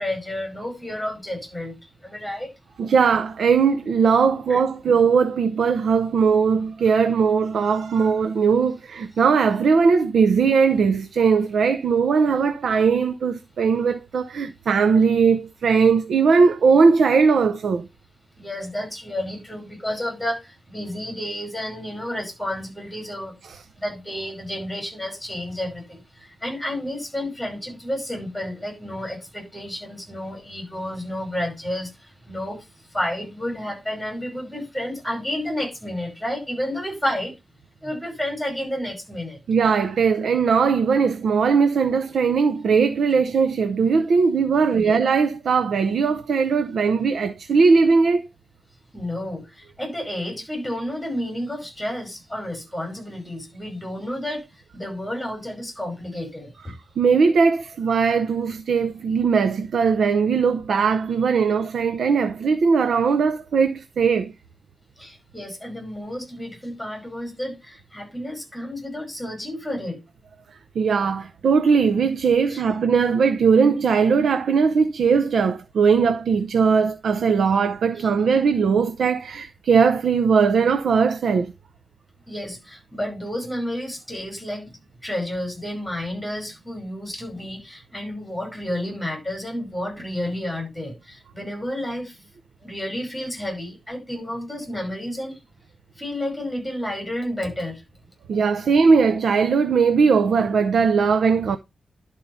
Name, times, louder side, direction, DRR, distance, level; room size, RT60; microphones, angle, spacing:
voice 1, 0.0-1.8 2.0-2.5 4.5-4.6 18.4-23.3 23.8-37.3 37.8-39.4 44.9-45.0 48.9-54.5 54.7-56.7 65.0-70.0 72.5-72.6 78.0-78.1 82.3-92.2 92.6-95.4 96.0-97.8, left 1 dB, ahead, 5.4 m, -31 dB
voice 2, 2.8-17.9 23.5-23.6 39.5-48.2 56.7-64.3 70.7-81.5 98.3-101.6, right 5 dB, 85° right, 0.6 m, -19 dB
11.0 x 4.6 x 5.5 m
wide cardioid pair, 165°, 0 cm